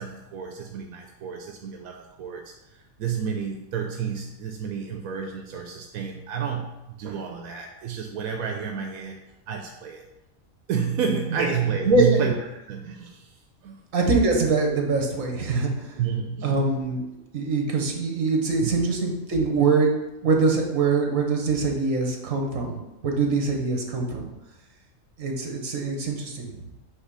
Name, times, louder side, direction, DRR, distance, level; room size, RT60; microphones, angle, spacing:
voice 1, 0.0-9.2 9.5-10.1 10.7-12.4 12.7-13.8 16.0-16.6 18.6-18.7, right 7 dB, 85° right, 3 dB, 1.1 m, -30 dB
voice 2, 11.9-12.2 13.9-16.0 16.4-17.0 17.3-19.9 20.2-24.3 25.2-26.6, right 3 dB, 70° right, 1 dB, 1.6 m, -23 dB
8.2 x 3.2 x 4.8 m, 0.96 s
omnidirectional pair, 1.5 m